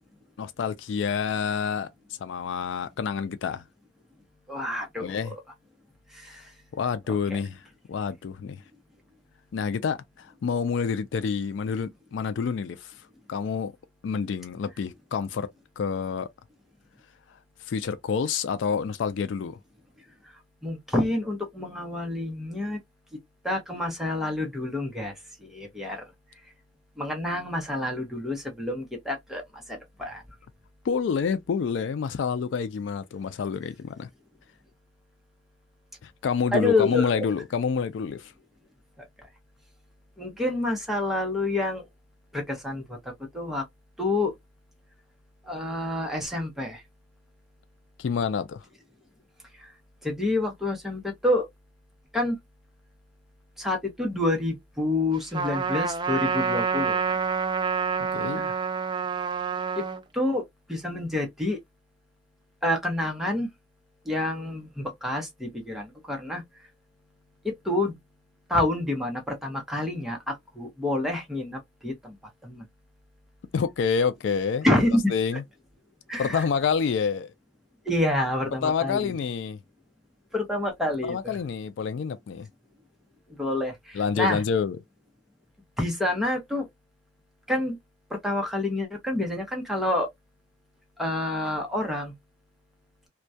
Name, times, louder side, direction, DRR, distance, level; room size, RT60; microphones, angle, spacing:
voice 1, 0.4-1.9 2.2-3.6 5.0-5.3 6.7-7.6 7.9-8.6 9.5-12.9 13.3-13.7 14.0-15.5 15.8-16.3 17.7-19.6 30.8-34.1 36.0-38.3 48.0-48.6 58.1-58.5 73.5-74.7 75.1-75.4 76.2-77.3 78.6-79.6 81.0-82.5 83.9-84.8, left 6 dB, 70° left, 0.3 m, -28 dB
voice 2, 4.5-5.3 6.1-6.4 7.3-7.4 20.6-22.8 23.4-25.1 25.4-26.0 27.0-30.2 36.5-37.2 40.2-41.8 42.3-43.6 44.0-44.3 45.5-46.8 49.6-49.7 50.0-51.5 52.1-52.4 53.6-57.2 58.3-58.6 60.1-61.6 62.6-63.5 64.1-66.4 67.4-68.0 68.5-72.2 72.4-72.6 74.6-75.1 76.1-76.4 77.9-79.1 80.3-81.4 83.3-84.4 85.8-86.7 87.5-87.8 88.1-90.1 91.0-92.1, left 2 dB, ahead, 0.7 m, -28 dB
Trumpet, 55.3-60.0, right 5 dB, 25° right, 0.3 m, -27 dB
2.2 x 2.2 x 2.6 m
head